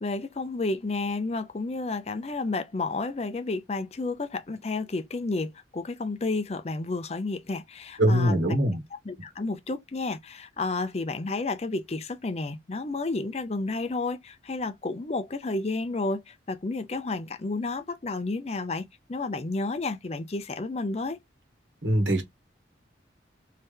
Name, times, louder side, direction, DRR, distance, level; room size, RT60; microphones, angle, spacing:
voice 1, 0.0-8.6 9.0-21.2, left 3 dB, 35° left, 0.5 m, -31 dB
voice 2, 8.0-8.8 21.8-22.2, right 1 dB, 80° right, 1.2 m, -22 dB
3.3 x 2.7 x 3.6 m
head